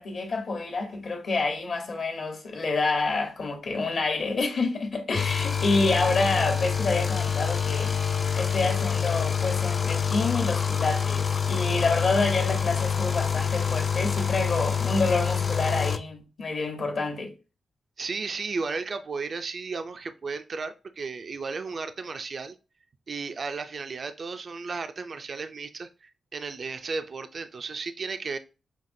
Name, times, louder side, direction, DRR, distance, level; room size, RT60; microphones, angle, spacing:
voice 1, 0.0-7.9 8.4-17.3, left 3 dB, 55° left, 1.1 m, -28 dB
sound 1, 5.1-16.0, left 7 dB, 35° left, 0.4 m, -26 dB
voice 2, 18.0-22.6 23.1-28.4, right 4 dB, 45° right, 0.4 m, -34 dB
5.7 x 2.8 x 2.6 m
wide cardioid pair, 140°, 0 cm